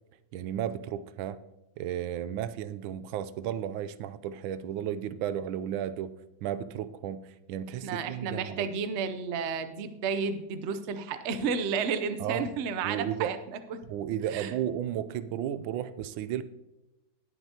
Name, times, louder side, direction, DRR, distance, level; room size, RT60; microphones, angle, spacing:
voice 1, 0.3-1.4 1.8-6.1 6.4-8.7 12.2-12.5 12.8-13.3 13.9-16.4, right 10 dB, 90° right, 1.4 m, -33 dB
voice 2, 7.8-13.4 13.7-13.8 14.3-14.5, right 5 dB, 60° right, 0.7 m, -32 dB
19.0 x 7.0 x 2.8 m
omnidirectional pair, 2.1 m